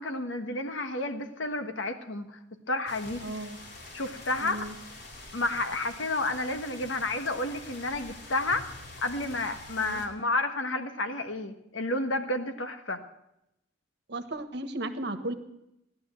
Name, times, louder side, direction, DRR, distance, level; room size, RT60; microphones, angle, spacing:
voice 1, 0.0-2.4 2.7-3.2 3.9-4.6 5.3-8.7 9.0-13.0, left 2 dB, 85° left, 7 dB, 1.4 m, -31 dB
sound 1, 2.9-10.1, left 2 dB, 60° left, 3.4 m, -46 dB
voice 2, 3.2-3.6 4.4-4.8 9.8-10.0 14.1-15.3, right 1 dB, 60° right, 9 dB, 1.3 m, -35 dB
15.5 x 11.5 x 7.6 m, 0.85 s
head